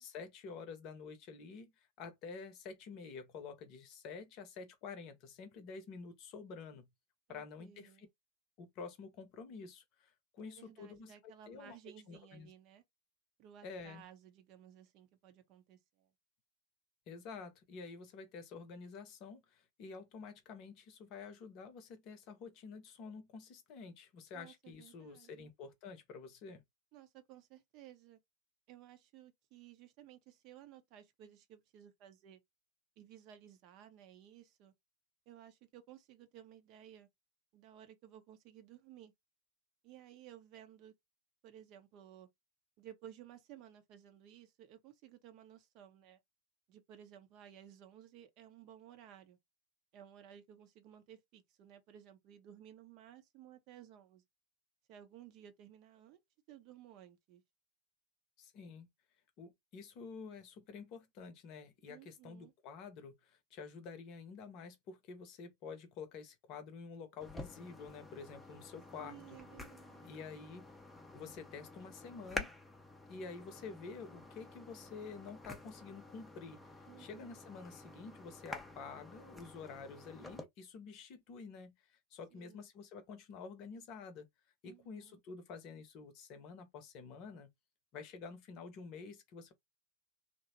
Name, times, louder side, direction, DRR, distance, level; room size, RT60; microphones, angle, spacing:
voice 1, 0.0-6.9 7.3-8.1 8.6-11.8 12.1-12.5 13.6-14.0 17.1-26.6 58.4-58.9 59.4-69.2 70.0-70.7 71.1-72.5 73.1-76.6 77.0-84.3 84.6-87.5 87.9-89.5, left 5 dB, 40° left, 0.7 m, -49 dB
voice 2, 7.3-8.1 10.4-12.8 13.4-16.1 24.3-25.5 26.9-28.2 28.7-32.4 33.0-34.7 35.3-37.1 37.5-39.1 39.8-40.9 41.4-42.3 42.8-46.2 46.7-49.4 49.9-54.2 54.9-56.2 56.5-57.4 61.9-62.5 69.0-70.4 76.9-77.4 82.3-82.7 84.6-85.2, right 10 dB, 40° right, 0.6 m, -57 dB
sound 1, 67.2-80.4, left 2 dB, 5° left, 0.6 m, -49 dB
2.9 x 2.0 x 2.8 m
figure-of-eight pair, 90°, 0 cm